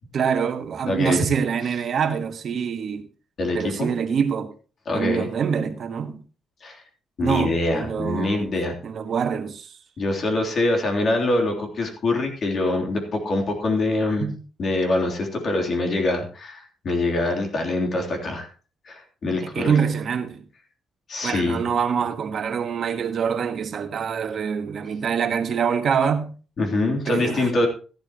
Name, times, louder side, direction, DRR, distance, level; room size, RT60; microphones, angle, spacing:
voice 1, 0.1-3.1 3.5-4.5 4.9-6.2 7.2-8.5 8.8-9.8 14.2-14.4 19.5-20.4 21.2-26.3 27.1-27.5, right 7 dB, 55° right, 1.4 m, -25 dB
voice 2, 0.8-1.2 3.4-3.9 4.8-5.3 6.6-6.8 7.2-8.8 10.0-14.3 14.6-18.5 18.8-19.8 21.1-21.6 26.6-27.7, left 2 dB, 50° left, 3.3 m, -24 dB
14.5 x 12.0 x 3.0 m
cardioid pair, 115°, 0 cm